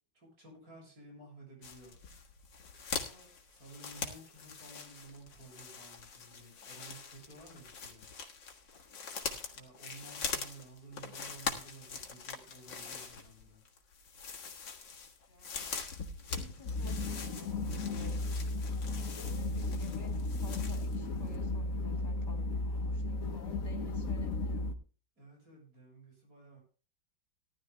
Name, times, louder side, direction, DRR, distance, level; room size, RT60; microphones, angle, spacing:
voice 1, 0.1-1.9 3.5-8.1 9.4-13.6 25.2-26.6, right 2 dB, 50° right, -1 dB, 8.1 m, -54 dB
sound 1, 1.6-21.1 21.3-21.4, left 5 dB, 70° left, 2.2 m, -43 dB
voice 2, 3.0-3.3 9.3-9.6 15.2-15.7 16.2-18.2 19.1-24.8, left 1 dB, 25° left, 2 dB, 3.3 m, -54 dB
sound 2, 16.6-24.7, left 2 dB, 50° left, 1.3 m, -35 dB
18.5 x 12.0 x 2.2 m, 0.36 s
omnidirectional pair, 2.1 m